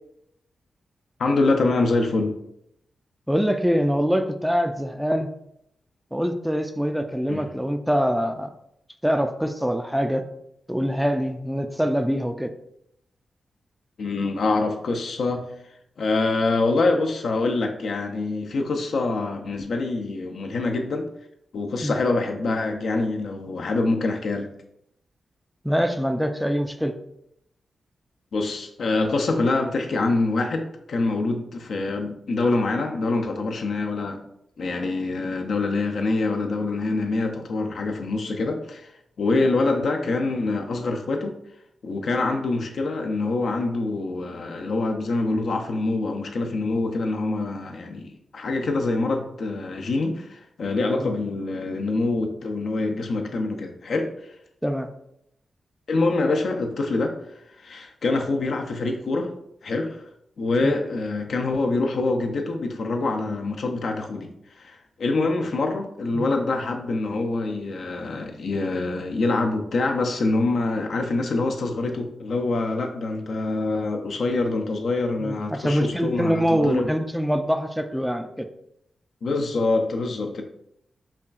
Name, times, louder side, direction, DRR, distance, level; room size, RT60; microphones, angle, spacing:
voice 1, 1.2-2.4 7.3-7.5 14.0-15.5 16.0-21.1 21.5-24.5 28.3-34.2 34.6-38.9 39.2-41.3 41.8-54.1 55.9-57.2 57.6-59.3 59.6-60.0 60.4-64.3 64.6-76.9 79.2-80.4, left 3 dB, 75° left, 4 dB, 0.5 m, -25 dB
voice 2, 3.3-5.3 6.1-8.5 9.0-10.2 10.7-12.5 21.8-21.9 25.6-26.9 39.3-39.4 51.0-51.1 54.6-54.9 60.6-60.7 66.1-66.3 75.2-78.5, equal, ahead, 7 dB, 0.3 m, -24 dB
5.5 x 2.3 x 2.4 m, 0.77 s
cardioid pair, 65°, 0 cm